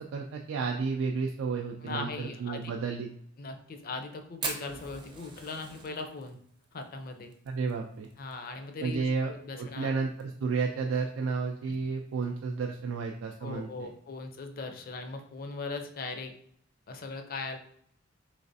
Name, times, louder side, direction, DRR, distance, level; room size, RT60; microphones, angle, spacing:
voice 1, 0.0-3.1 7.5-8.1 8.8-9.3 9.6-13.9, right 4 dB, 75° right, 2 dB, 0.3 m, -32 dB
voice 2, 1.8-2.7 3.4-6.4 6.7-7.3 8.2-9.9 13.4-16.3 16.9-17.6, left 3 dB, 45° left, 6 dB, 0.4 m, -39 dB
Fire, 4.4-8.9 9.2-9.3 9.5-9.6 10.0-10.4 10.9-11.0 12.1-12.2, right 3 dB, 25° right, 0.5 m, -40 dB
3.2 x 3.2 x 2.6 m, 0.64 s
head